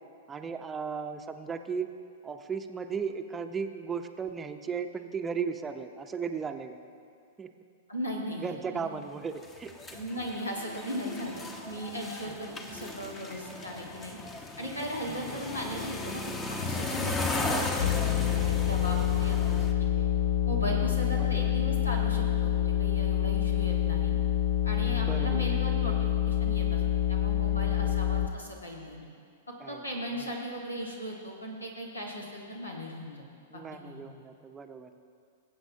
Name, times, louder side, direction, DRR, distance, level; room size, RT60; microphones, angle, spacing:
voice 1, 0.3-1.9 2.2-6.8 7.4-7.5 8.4-9.7 12.3-12.4 15.1-15.4 17.4-17.8 20.6-20.9 21.2-21.5 25.0-25.5 27.8-27.9 29.6-29.8 30.2-30.3 33.5-34.9, right 6 dB, 15° right, 7 dB, 0.7 m, -36 dB
voice 2, 7.9-8.5 9.9-14.2 14.6-20.1 20.4-24.1 24.6-26.8 27.1-29.1 29.7-33.2 33.5-34.1, equal, 85° left, -1 dB, 1.7 m, -37 dB
sound 1, 9.4-19.7, left 3 dB, 20° left, 1.0 m, -35 dB
sound 2, 17.8-28.3, left 10 dB, 50° left, 0.4 m, -27 dB
21.5 x 7.9 x 2.8 m, 2.3 s
figure-of-eight pair, 105°, 0 cm